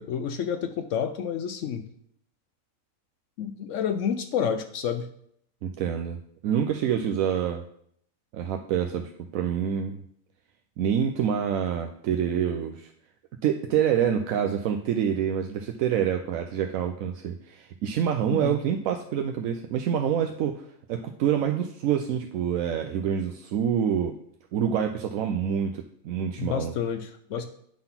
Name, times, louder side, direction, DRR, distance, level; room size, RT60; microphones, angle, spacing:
voice 1, 0.0-1.8 3.4-5.1 18.3-18.5 26.4-27.5, left 7 dB, 70° left, 9 dB, 0.9 m, -29 dB
voice 2, 5.6-6.2 6.4-7.6 8.3-10.0 10.8-12.9 13.4-24.2 24.5-26.7, right 8 dB, 80° right, 4 dB, 1.0 m, -27 dB
8.7 x 3.9 x 5.7 m, 0.67 s
omnidirectional pair, 1.4 m